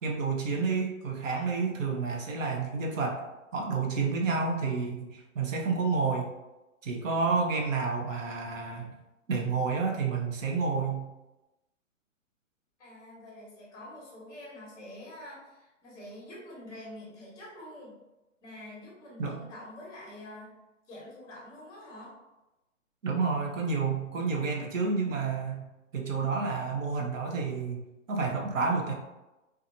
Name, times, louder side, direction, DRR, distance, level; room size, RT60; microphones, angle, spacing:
voice 1, 0.0-3.2 3.5-6.3 6.8-8.9 9.3-11.1 19.2-19.3 23.0-25.7 25.9-27.8 28.1-28.9, right 4 dB, 70° right, 0 dB, 0.8 m, -30 dB
voice 2, 12.8-17.9 18.4-20.5 20.9-22.1, left 1 dB, 10° left, -6 dB, 0.9 m, -46 dB
2.5 x 2.4 x 2.6 m, 1.0 s
hypercardioid pair, 145°, 40 cm